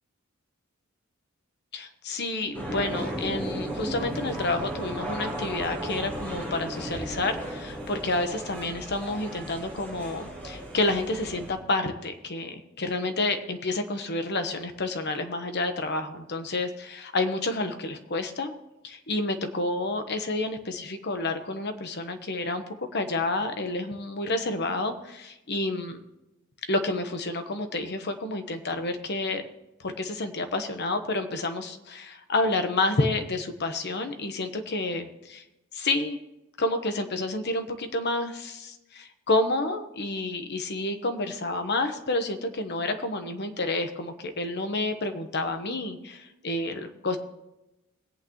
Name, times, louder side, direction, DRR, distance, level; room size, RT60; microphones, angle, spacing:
voice 1, 1.7-18.5 18.8-26.0 26.7-29.4 29.8-35.4 35.7-36.2 36.6-47.2, left 2 dB, 55° left, 7 dB, 1.1 m, -29 dB
sound 1, 2.5-11.5, right 1 dB, 10° left, 4.3 m, -35 dB
21.5 x 8.6 x 3.1 m, 0.97 s
head